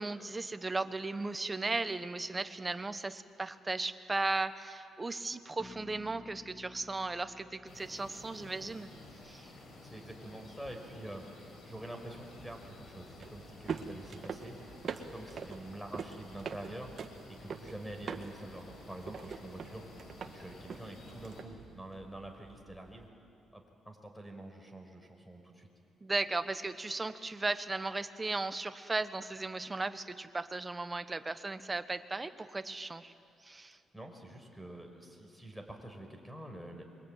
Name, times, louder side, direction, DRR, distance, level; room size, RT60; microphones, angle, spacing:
voice 1, 0.0-8.9 9.2-9.5 26.0-33.1 33.4-33.8, right 3 dB, 20° right, 11 dB, 1.1 m, -36 dB
Bass guitar, 5.6-9.3, left 3 dB, 35° left, 2.3 m, -55 dB
sound 1, 7.7-21.4, left 2 dB, 55° left, 7.0 m, -53 dB
voice 2, 9.8-23.1 23.5-25.7 33.9-36.8, right 1 dB, ahead, 4 dB, 5.2 m, -47 dB
sound 2, 12.2-23.1, right 6 dB, 50° right, 1.7 m, -45 dB
27.0 x 23.0 x 9.2 m, 2.5 s
cardioid pair, 90°, 0 cm